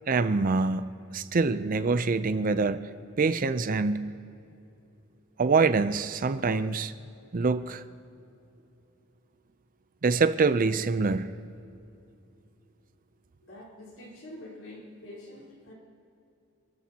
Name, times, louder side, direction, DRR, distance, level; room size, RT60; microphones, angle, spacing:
voice 1, 0.1-2.8 3.2-4.1 5.4-6.9 7.3-7.8 10.0-11.3, right 4 dB, 40° right, 12 dB, 0.5 m, -25 dB
voice 2, 13.4-15.7, left 1 dB, 80° left, -5 dB, 4.2 m, -46 dB
27.5 x 13.5 x 2.9 m, 2.7 s
head